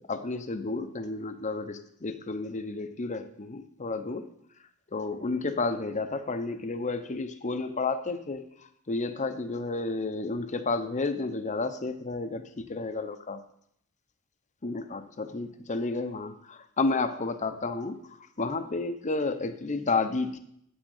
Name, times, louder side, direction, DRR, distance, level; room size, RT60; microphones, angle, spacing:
voice 1, 0.0-4.2 4.9-8.4 8.9-13.4 14.6-18.0 18.4-20.4, left 3 dB, 35° left, 10 dB, 0.8 m, -31 dB
9.5 x 6.2 x 6.5 m, 0.71 s
head